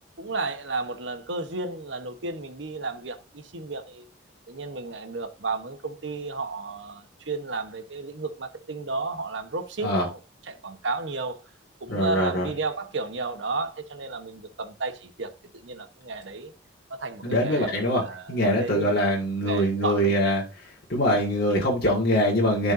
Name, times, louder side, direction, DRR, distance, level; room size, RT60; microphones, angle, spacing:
voice 1, 0.2-4.1 4.5-10.2 10.5-11.4 11.8-16.5 16.9-19.1 19.4-20.3, right 3 dB, 75° right, 1.1 m, -33 dB
voice 2, 11.9-12.5 17.2-22.7, equal, 55° left, 1.9 m, -24 dB
13.5 x 5.3 x 2.7 m
head